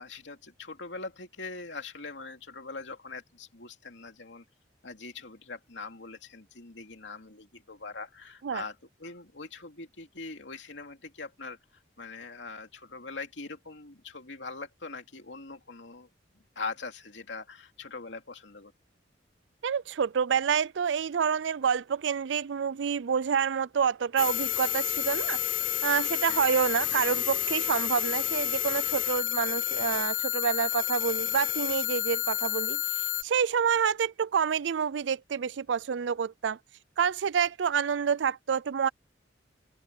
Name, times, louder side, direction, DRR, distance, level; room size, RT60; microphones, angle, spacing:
voice 1, 0.0-4.4 4.8-11.6 12.0-16.1 16.6-18.7 26.3-26.4, left 3 dB, 85° left, 2.8 m, -42 dB
voice 2, 19.6-25.4 25.8-36.6 37.0-38.9, right 7 dB, 85° right, 0.4 m, -28 dB
sound 1, 24.2-33.2, left 13 dB, 45° left, 0.6 m, -30 dB
head